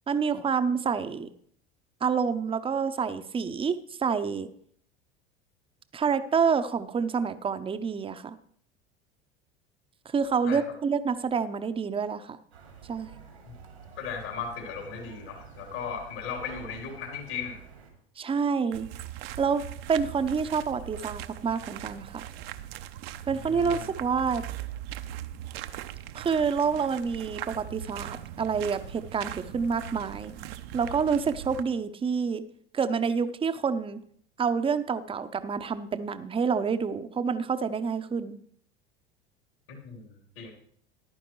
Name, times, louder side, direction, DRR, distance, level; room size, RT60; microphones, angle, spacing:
voice 1, 0.1-1.3 2.0-4.5 5.9-8.4 10.1-12.4 12.9-13.2 18.2-18.9 19.4-19.6 19.9-22.2 23.3-24.4 26.1-30.3 30.7-32.4 32.7-34.0 34.4-38.4, right 6 dB, 15° right, 11 dB, 0.6 m, -28 dB
sound 1, 12.5-17.9, right 6 dB, 90° right, 2.3 m, -49 dB
voice 2, 14.0-17.6 23.4-23.9 39.7-40.5, left 6 dB, 70° left, 1 dB, 3.3 m, -37 dB
sound 2, 18.7-31.6, right 12 dB, 65° right, 0.7 m, -40 dB
14.0 x 10.5 x 3.1 m, 0.63 s
hypercardioid pair, 75°, 32 cm